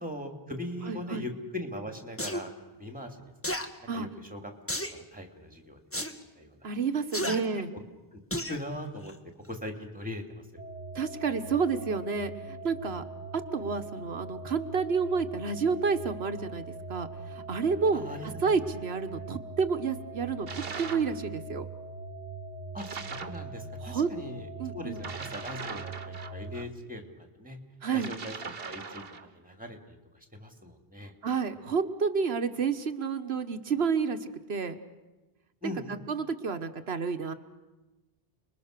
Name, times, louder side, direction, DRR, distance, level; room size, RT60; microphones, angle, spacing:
voice 1, 0.0-2.5 2.8-3.3 3.6-4.5 4.9-6.0 6.4-6.7 7.3-7.8 8.1-8.2 8.5-9.1 9.5-10.5 17.9-18.4 22.7-27.6 27.9-29.0 29.3-31.1 35.6-36.0, left 1 dB, 10° right, 4 dB, 2.8 m, -40 dB
voice 2, 0.9-1.3 3.9-4.1 6.6-7.7 10.9-13.0 13.3-16.6 16.9-21.7 23.8-24.1 24.6-25.0 27.8-28.1 31.0-34.7 36.1-37.3, right 5 dB, 85° right, 8 dB, 1.5 m, -30 dB
sound 1, 2.2-2.4 3.4-3.7 4.7-5.0 5.9-6.1 7.1-7.4 8.3-8.6 9.1-9.2, equal, 15° left, 1.5 m, -32 dB
sound 2, 10.6-26.7, right 3 dB, 45° right, 1.2 m, -42 dB
sound 3, 20.5-21.2 22.8-23.4 25.0-26.7 27.9-29.3, right 5 dB, 65° right, 1.4 m, -40 dB
30.0 x 21.5 x 6.7 m, 1.1 s
omnidirectional pair, 1.0 m